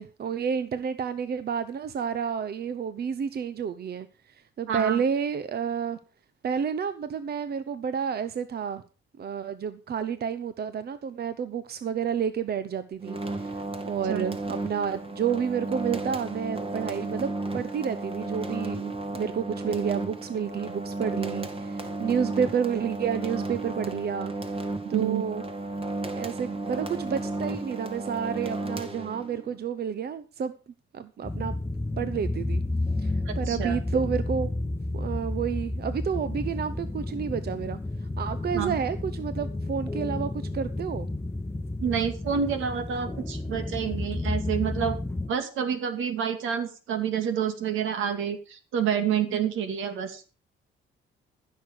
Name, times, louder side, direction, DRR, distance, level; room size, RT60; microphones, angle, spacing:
voice 1, 0.0-6.0 6.4-8.8 9.2-24.3 24.9-25.4 26.1-30.5 30.9-31.5 32.0-32.6 33.0-34.5 34.9-37.8 38.2-41.1, right 7 dB, 50° right, 0.9 m, -30 dB
voice 2, 4.7-5.0 14.1-14.2 24.9-25.2 33.3-33.8 38.5-38.8 41.8-45.0 45.3-50.3, right 8 dB, 80° right, 2.4 m, -28 dB
sound 1, 13.0-29.5, right 2 dB, 30° right, 2.0 m, -33 dB
sound 2, 31.2-45.3, left 2 dB, 10° left, 0.8 m, -31 dB
15.0 x 6.7 x 6.6 m
cardioid pair, 90°, 20 cm